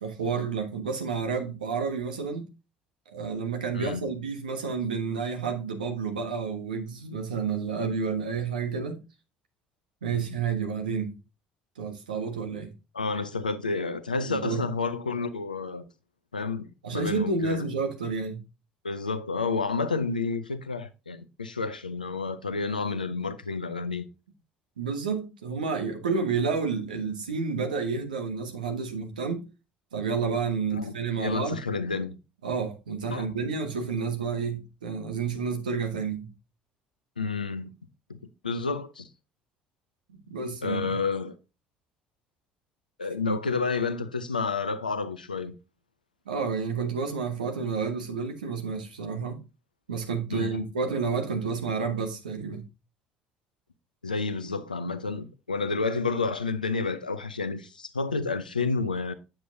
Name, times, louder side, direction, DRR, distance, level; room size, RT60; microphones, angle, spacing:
voice 1, 0.0-2.5 3.1-9.0 10.0-11.1 11.8-12.7 14.3-14.6 16.8-18.4 24.8-29.4 29.9-31.6 32.4-36.3 40.3-41.0 43.2-43.4 46.3-49.4 49.9-52.7, right 5 dB, 80° right, 1.3 m, -30 dB
voice 2, 3.7-4.1 10.1-10.2 12.9-15.8 16.3-17.7 18.8-24.1 30.7-32.2 33.1-33.3 37.2-37.7 38.1-38.2 38.4-39.1 40.6-41.3 43.0-45.5 50.3-50.7 54.0-59.1, left 4 dB, 85° left, 0.6 m, -30 dB
8.8 x 7.6 x 2.6 m
figure-of-eight pair, 55°, 4 cm